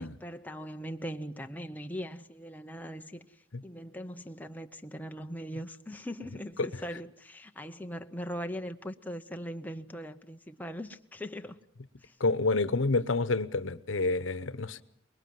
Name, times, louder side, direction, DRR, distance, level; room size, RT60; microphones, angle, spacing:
voice 1, 0.0-11.6 12.0-12.2, equal, 10° left, 0.9 m, -40 dB
voice 2, 12.2-14.8, left 3 dB, 80° left, 1.0 m, -28 dB
24.5 x 21.0 x 7.7 m
head